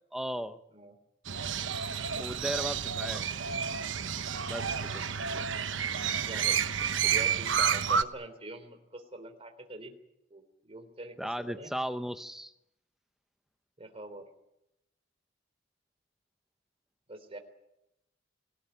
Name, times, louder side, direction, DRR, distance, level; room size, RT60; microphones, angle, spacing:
voice 1, 0.1-0.6 2.2-3.3 4.5-5.0 11.2-12.5, equal, ahead, 10 dB, 0.9 m, -36 dB
Crow, 1.3-8.0, right 7 dB, 75° right, 1.0 m, -30 dB
voice 2, 6.3-9.9 10.3-11.7 13.8-14.3 17.1-17.4, right 2 dB, 30° right, 7 dB, 3.6 m, -44 dB
24.5 x 18.0 x 9.3 m, 0.87 s
head